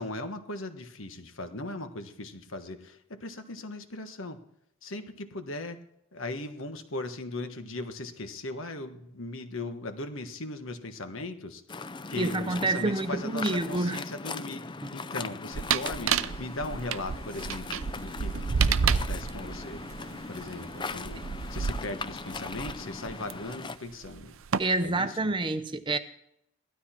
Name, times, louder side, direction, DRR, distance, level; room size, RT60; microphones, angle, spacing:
voice 1, 0.0-4.4 4.8-5.8 6.1-19.8 20.3-21.2 21.5-24.3 24.8-25.3, left 2 dB, 65° left, 8 dB, 1.3 m, -38 dB
Waves surf, 11.7-23.8, left 4 dB, 20° left, 0.4 m, -39 dB
voice 2, 12.2-14.0 24.6-26.0, right 2 dB, 20° right, 10 dB, 0.7 m, -28 dB
sound 1, 15.5-23.3 24.0-24.6, right 6 dB, 65° right, 0.6 m, -30 dB
16.5 x 12.5 x 4.4 m, 0.74 s
head